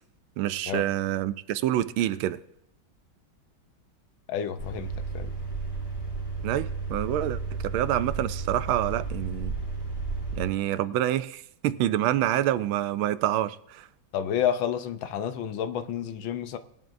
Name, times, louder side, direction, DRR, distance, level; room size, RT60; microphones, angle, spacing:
voice 1, 0.4-2.4 6.4-9.5 10.4-13.8, right 12 dB, 85° right, 1.4 m, -27 dB
voice 2, 4.3-5.3 14.1-16.6, left 9 dB, 75° left, 1.5 m, -30 dB
sound 1, 4.6-10.5, right 4 dB, 10° left, 2.7 m, -33 dB
19.5 x 11.0 x 2.6 m
omnidirectional pair, 2.2 m